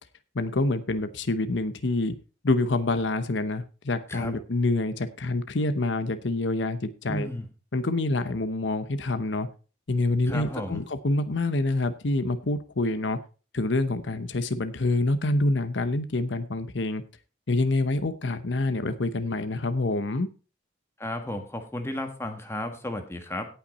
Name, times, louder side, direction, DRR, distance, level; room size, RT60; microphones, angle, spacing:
voice 1, 0.3-2.1 2.4-7.3 7.7-9.5 9.9-13.2 13.5-17.0 17.5-20.3, left 2 dB, 75° left, 11 dB, 0.8 m, -26 dB
voice 2, 7.1-7.5 10.3-10.8 21.0-23.5, left 1 dB, 15° left, 5 dB, 1.5 m, -33 dB
17.0 x 5.8 x 4.1 m, 0.35 s
head